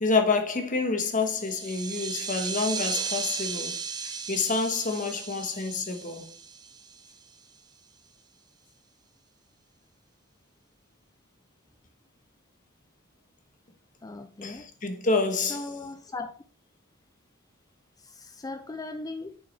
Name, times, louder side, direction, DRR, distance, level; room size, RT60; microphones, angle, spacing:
voice 1, 0.0-6.3 14.4-15.7, left 4 dB, 40° left, 1.3 m, -28 dB
sound 1, 1.3-7.3, right 6 dB, 20° right, 0.6 m, -35 dB
voice 2, 14.0-14.7 15.5-16.3 18.0-19.4, left 2 dB, 20° left, 0.4 m, -38 dB
7.1 x 5.9 x 3.3 m
head